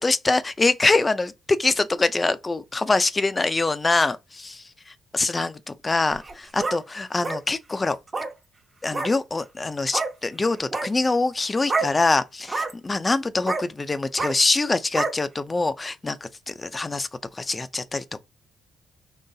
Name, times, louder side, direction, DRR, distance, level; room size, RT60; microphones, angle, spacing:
voice 1, 0.0-8.0 8.8-18.2, left 3 dB, 25° left, 0.5 m, -24 dB
sound 1, 6.1-6.8 7.2-7.4 8.1-8.3 8.9-9.1 9.9-10.1 10.6-10.9 11.7-11.9 12.4-12.7 13.5-13.6 14.2-14.3 14.9-15.1, right 3 dB, 30° right, 1.0 m, -27 dB
3.9 x 3.1 x 2.7 m
cardioid pair, 90°, 0 cm